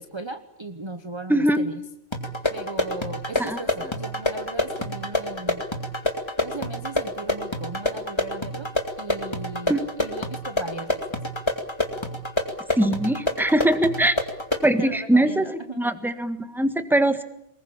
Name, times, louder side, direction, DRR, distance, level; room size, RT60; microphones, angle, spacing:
voice 1, 0.0-1.8 2.5-5.6 6.4-8.7 9.0-11.2 14.8-15.8, right 2 dB, 25° right, 7 dB, 1.1 m, -37 dB
voice 2, 1.3-1.6 3.4-3.6 9.7-9.8 12.8-14.2 14.6-15.5 15.7-17.2, right 1 dB, ahead, 9 dB, 1.5 m, -21 dB
sound 1, 2.1-14.7, left 1 dB, 20° left, 2.4 m, -28 dB
24.0 x 21.0 x 8.8 m, 0.77 s
omnidirectional pair, 1.3 m